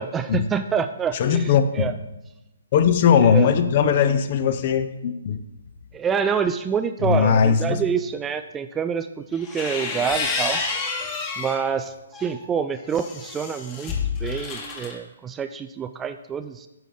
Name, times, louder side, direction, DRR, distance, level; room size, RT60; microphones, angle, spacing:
voice 1, 0.0-1.9 3.2-3.5 5.9-10.6 11.4-11.9 12.2-13.9 14.2-16.7, right 7 dB, 15° right, 10 dB, 0.3 m, -27 dB
voice 2, 1.1-1.9 2.7-5.4 7.0-7.8, left 7 dB, 40° left, 10 dB, 0.7 m, -19 dB
sound 1, 9.3-11.7 12.1-14.9, left 4 dB, 25° left, 1.4 m, -29 dB
10.5 x 6.9 x 3.9 m, 0.97 s
figure-of-eight pair, 135°, 0 cm